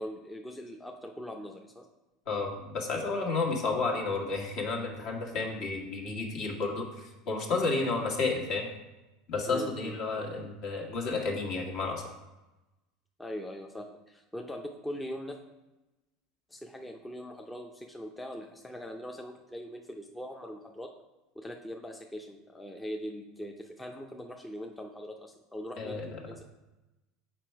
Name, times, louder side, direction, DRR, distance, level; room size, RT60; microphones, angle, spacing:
voice 1, 0.0-1.9 9.5-10.0 13.2-15.4 16.5-20.9 21.3-26.4, equal, 10° left, 2 dB, 0.6 m, -41 dB
voice 2, 2.3-8.7 9.3-12.0 25.8-26.2, left 3 dB, 60° left, 1 dB, 1.6 m, -31 dB
5.9 x 4.5 x 4.7 m, 1.0 s
supercardioid pair, 105°, 0 cm